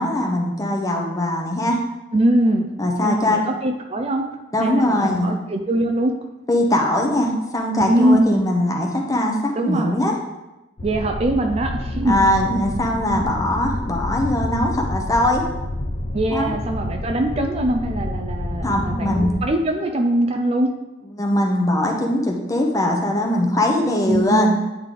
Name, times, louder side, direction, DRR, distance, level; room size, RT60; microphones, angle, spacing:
voice 1, 0.0-1.8 2.8-3.4 4.5-5.3 6.5-10.2 12.0-15.4 16.3-16.5 18.6-19.3 21.0-24.5, left 1 dB, 20° left, 0 dB, 0.8 m, -21 dB
voice 2, 2.1-2.7 3.0-4.2 4.6-6.1 7.8-8.4 9.5-10.0 10.8-12.2 16.1-20.7 24.1-24.6, right 1 dB, 35° right, 4 dB, 0.4 m, -21 dB
sound 1, 10.8-19.5, left 1 dB, 50° left, 0.6 m, -28 dB
9.4 x 3.3 x 3.8 m, 1.0 s
head